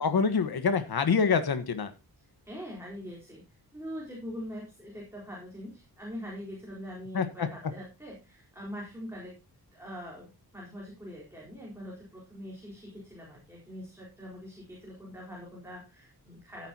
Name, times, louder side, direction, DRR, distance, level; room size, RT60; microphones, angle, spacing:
voice 1, 0.0-1.9 7.1-7.5, left 5 dB, 70° left, 10 dB, 1.4 m, -26 dB
voice 2, 2.5-3.4 3.7-9.4 9.7-16.7, equal, 5° right, -3 dB, 4.3 m, -43 dB
15.0 x 9.0 x 2.9 m, 0.25 s
wide cardioid pair, 125°, 38 cm